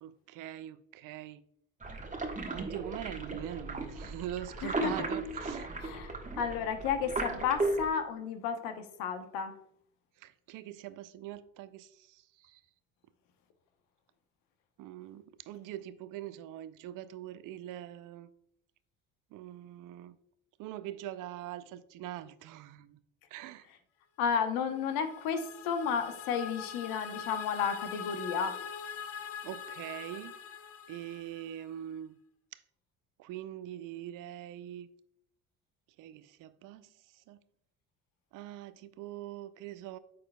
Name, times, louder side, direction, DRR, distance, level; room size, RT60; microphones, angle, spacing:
voice 1, 0.0-1.4 2.5-5.7 10.2-12.6 14.8-18.3 19.3-20.2 20.6-23.0 23.3-23.7 29.4-30.4 30.9-32.2 32.5-32.6 33.2-34.9 36.0-37.4 38.3-40.0, right 12 dB, 60° right, 0.5 m, -43 dB
sound 1, 1.8-7.9, right 2 dB, 20° right, 1.2 m, -36 dB
voice 2, 4.6-5.1 5.8-9.5 24.2-28.5, left 6 dB, 75° left, 1.0 m, -32 dB
sound 2, 24.6-31.7, left 8 dB, 40° left, 0.6 m, -43 dB
12.5 x 4.3 x 2.2 m
hypercardioid pair, 60°, 35 cm